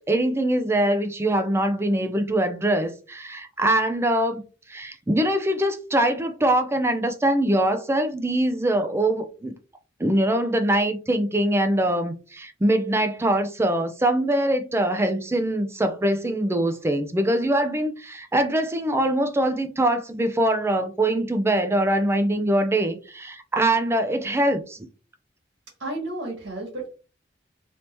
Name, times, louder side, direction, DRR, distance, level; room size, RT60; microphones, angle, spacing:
voice 1, 0.1-4.4 4.7-9.5 10.0-24.9, right 1 dB, 15° right, 0.4 m, -23 dB
voice 2, 25.8-27.0, right 2 dB, 90° right, 1.7 m, -32 dB
3.4 x 2.7 x 3.0 m
head